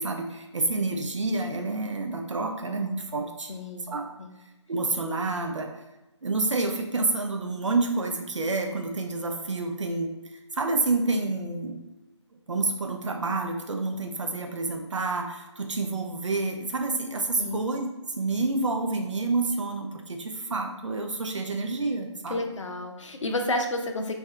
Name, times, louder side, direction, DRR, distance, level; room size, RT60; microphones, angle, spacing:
voice 1, 0.0-3.5 3.9-4.1 4.7-5.7 6.2-10.1 10.5-11.8 12.5-17.9 18.2-22.4, right 3 dB, 75° right, 4 dB, 0.5 m, -28 dB
voice 2, 3.5-3.9 4.2-4.3 17.4-17.6 22.3-24.1, left 1 dB, 75° left, 4 dB, 0.5 m, -30 dB
2.3 x 2.3 x 2.7 m, 0.99 s
figure-of-eight pair, 145°, 16 cm